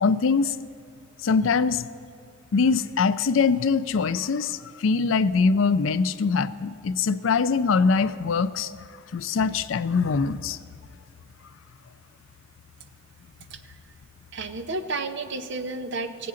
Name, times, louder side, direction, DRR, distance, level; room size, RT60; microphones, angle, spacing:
voice 1, 0.0-0.5 1.2-1.9 2.5-8.7 9.1-10.6, left 5 dB, 70° left, 13 dB, 0.4 m, -23 dB
voice 2, 14.3-16.3, right 3 dB, 60° right, 8 dB, 0.7 m, -31 dB
19.5 x 8.4 x 3.8 m, 2.4 s
head